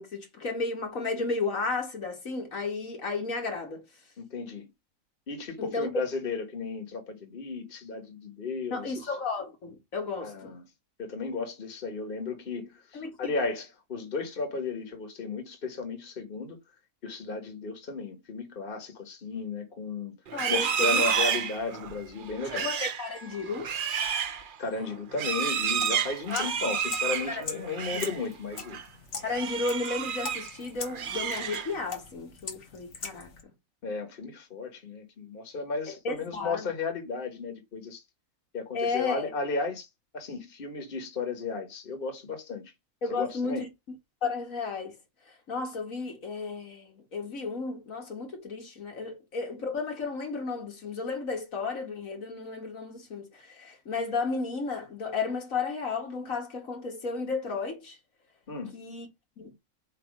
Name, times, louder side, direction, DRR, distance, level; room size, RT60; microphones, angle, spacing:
voice 1, 0.0-3.8 5.6-5.9 8.7-10.5 12.9-13.3 20.3-21.3 22.5-23.7 26.3-26.5 27.3-27.4 27.9-28.0 29.2-33.3 35.9-36.7 38.7-39.3 43.0-43.7 44.2-45.0 45.5-58.0 58.7-59.1 59.4-59.5, left 4 dB, 80° left, 2.4 m, -33 dB
voice 2, 4.2-4.7 5.3-9.1 10.2-10.6 11.0-16.6 17.0-20.2 20.5-22.7 24.6-28.8 33.8-38.0 38.5-39.9 40.1-42.7 43.1-43.6 58.5-58.8, left 4 dB, 40° left, 1.6 m, -34 dB
Livestock farm animals working animals, 20.3-28.2 28.5-28.8 29.3-30.5 30.8-31.9, right 7 dB, 45° right, 0.8 m, -30 dB
sound 1, 25.5-33.4, left 5 dB, 60° left, 1.6 m, -42 dB
7.9 x 3.0 x 5.3 m
omnidirectional pair, 1.4 m